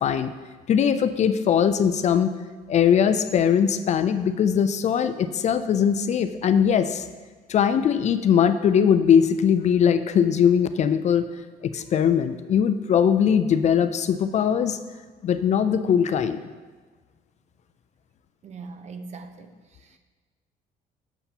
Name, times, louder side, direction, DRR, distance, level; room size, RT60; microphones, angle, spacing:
voice 1, 0.0-0.3 0.7-2.3 2.7-7.1 7.5-11.3 11.6-14.8 15.2-16.4, left 8 dB, 45° left, 11 dB, 0.4 m, -20 dB
voice 2, 18.4-20.0, right 4 dB, 40° right, 7 dB, 0.7 m, -41 dB
7.8 x 6.8 x 2.8 m, 1.4 s
cardioid pair, 110°, 17 cm